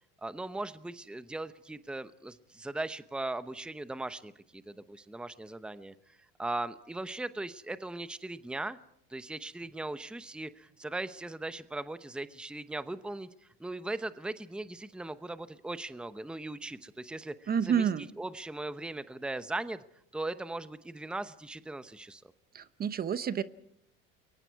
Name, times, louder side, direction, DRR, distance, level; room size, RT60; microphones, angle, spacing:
voice 1, 0.2-8.8 9.1-19.8 20.1-22.3, right 2 dB, 5° right, 13 dB, 0.9 m, -39 dB
voice 2, 17.5-18.1 22.5-23.4, right 8 dB, 30° right, 14 dB, 0.9 m, -29 dB
29.5 x 22.5 x 4.7 m, 0.75 s
supercardioid pair, 105°, 30 cm